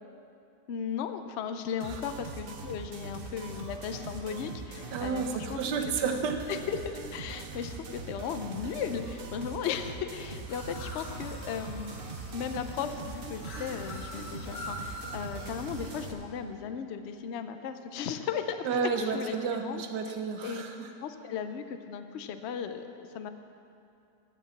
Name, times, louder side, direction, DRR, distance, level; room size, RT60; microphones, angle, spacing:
voice 1, 0.7-5.6 6.0-6.1 6.5-12.0 12.3-18.7 18.9-19.8 20.4-20.6 21.0-23.3, left 7 dB, 70° left, 8 dB, 0.6 m, -36 dB
sound 1, 1.8-16.1, right 4 dB, 55° right, 0.6 m, -42 dB
voice 2, 4.9-6.4 18.6-20.9, right 5 dB, 75° right, 5 dB, 1.5 m, -31 dB
sound 2, 10.5-16.1, left 1 dB, 50° left, 1.8 m, -43 dB
10.0 x 8.0 x 7.2 m, 2.6 s
omnidirectional pair, 1.9 m